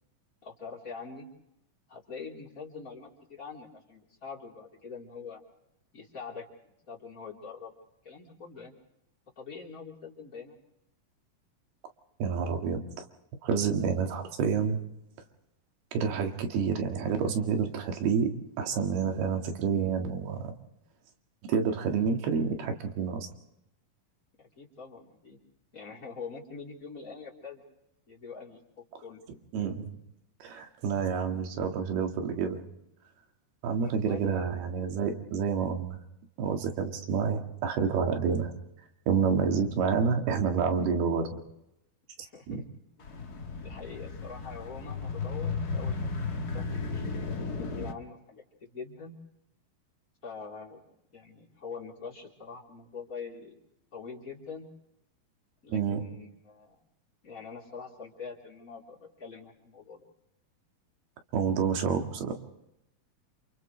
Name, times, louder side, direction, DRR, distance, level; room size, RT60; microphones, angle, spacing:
voice 1, 0.4-1.3 1.9-5.4 5.9-6.5 6.9-7.7 8.0-8.7 9.4-10.6 24.4-25.4 25.7-27.6 28.1-28.6 29.0-29.2 33.8-34.4 42.2-42.6 43.6-49.2 50.2-50.8 51.1-53.6 53.9-54.7 55.6-56.8 57.2-60.1, left 5 dB, 20° left, -2 dB, 3.9 m, -44 dB
voice 2, 12.2-12.8 13.4-14.8 15.9-20.5 21.5-23.3 29.5-30.0 30.4-32.6 33.6-36.0 36.4-38.6 39.1-41.3 42.5-42.6 55.7-56.0 61.3-62.3, right 6 dB, 90° right, 4 dB, 4.0 m, -28 dB
sound 1, 43.0-47.9, left 4 dB, 60° left, 1.0 m, -34 dB
30.0 x 28.0 x 3.3 m, 0.82 s
omnidirectional pair, 4.4 m